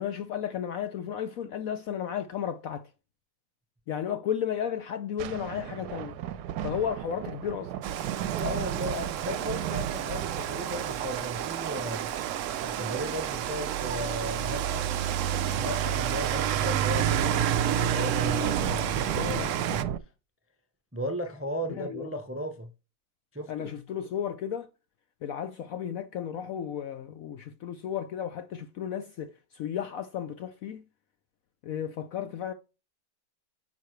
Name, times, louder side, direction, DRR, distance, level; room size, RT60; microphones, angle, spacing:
voice 1, 0.0-2.9 3.9-6.2 6.6-7.7 19.2-19.5 21.7-22.2 23.5-24.7 25.2-30.8 31.6-32.5, left 9 dB, 65° left, 0.8 m, -33 dB
sound 1, 5.2-12.9 16.7-20.0, right 10 dB, 70° right, 1.1 m, -35 dB
Rain, 7.8-19.8, right 10 dB, 90° right, 0.6 m, -30 dB
voice 2, 8.4-12.1 12.6-14.9 15.5-19.8 20.9-22.7 23.3-23.7, equal, 15° right, 0.5 m, -35 dB
9.5 x 5.8 x 3.1 m
omnidirectional pair, 2.0 m